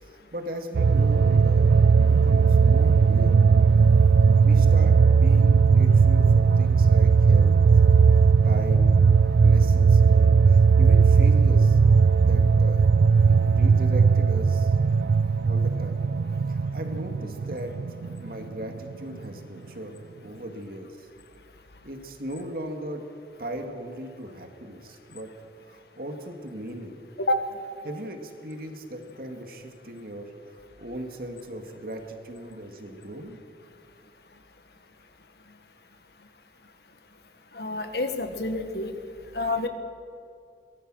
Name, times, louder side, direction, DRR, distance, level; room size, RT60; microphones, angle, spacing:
voice 1, 0.0-3.4 4.4-7.5 8.4-9.1 9.4-11.8 12.2-12.9 13.2-14.7 15.4-16.0 16.5-17.7 18.2-19.9 20.2-21.1 21.8-23.0 23.4-25.3 25.6-27.0 27.8-33.4, right 1 dB, 50° right, 4 dB, 2.3 m, -37 dB
sound 1, 0.7-18.3 18.6-18.7, right 5 dB, 80° right, 0.4 m, -18 dB
voice 2, 37.5-38.9 39.3-39.7, left 2 dB, 60° left, 7 dB, 1.7 m, -28 dB
23.0 x 18.0 x 6.4 m, 2.4 s
head